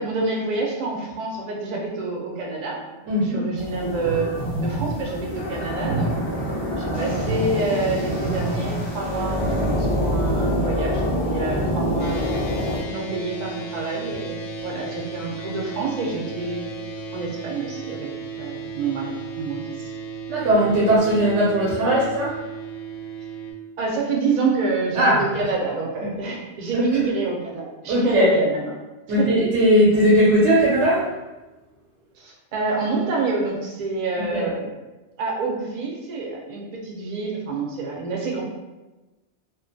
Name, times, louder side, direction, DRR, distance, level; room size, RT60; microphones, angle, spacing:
voice 1, 0.0-2.8 3.2-4.3 4.6-6.1 6.8-12.2 12.9-16.7 17.1-18.1 18.4-19.9 23.8-28.7 29.1-29.3 32.2-34.6 35.2-38.4, right 3 dB, 50° right, -2 dB, 0.5 m, -27 dB
voice 2, 3.1-3.4 20.3-22.4 24.9-25.2 26.0-26.1 26.7-26.8 27.9-28.4 29.1-31.1 34.3-34.5, equal, 90° right, -6 dB, 0.9 m, -18 dB
sound 1, 3.6-12.8, equal, 40° left, 0.4 m, -25 dB
sound 2, 12.0-23.5, right 3 dB, 60° left, 0.8 m, -35 dB
2.4 x 2.3 x 2.5 m, 1.1 s
omnidirectional pair, 1.2 m